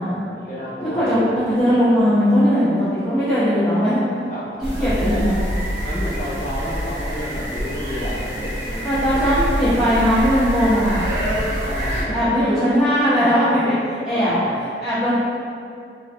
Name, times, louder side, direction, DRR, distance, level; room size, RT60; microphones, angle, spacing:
voice 1, 0.2-1.2 4.3-5.2 5.8-9.7 11.6-12.7 13.2-13.7 14.1-14.5, equal, 45° left, -9 dB, 1.0 m, -30 dB
voice 2, 0.9-4.0 4.8-5.3 8.8-11.0 11.3-11.4 11.8-13.7 14.0-14.3 14.8-15.1, equal, 5° right, -22 dB, 1.3 m, -19 dB
sound 1, 4.6-12.0, equal, 80° right, 0.9 m, -26 dB
4.5 x 2.5 x 2.2 m, 2.5 s
head